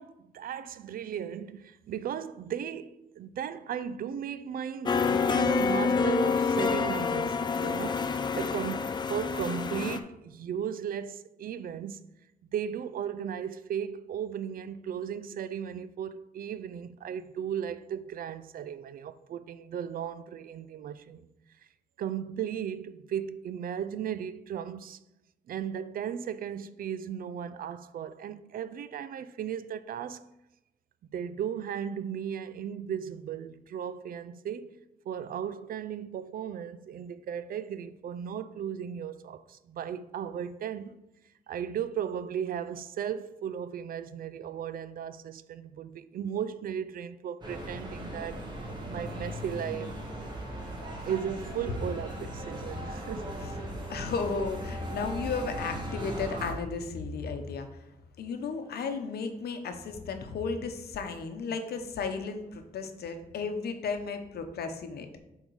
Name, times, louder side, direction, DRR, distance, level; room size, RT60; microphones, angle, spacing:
voice 1, 0.0-12.1 12.5-21.3 22.0-25.0 25.5-30.3 31.1-34.8 35.1-41.0 41.5-48.4 48.9-49.9 51.0-53.3, right 8 dB, 65° right, 0.4 m, -36 dB
sound 1, 4.9-10.0, left 5 dB, 30° left, 0.4 m, -27 dB
sound 2, 47.4-56.5, right 1 dB, 25° right, 1.6 m, -38 dB
voice 2, 53.9-57.7 58.2-65.2, left 4 dB, 85° left, 0.9 m, -34 dB
7.8 x 3.7 x 4.7 m
wide cardioid pair, 145°, 16 cm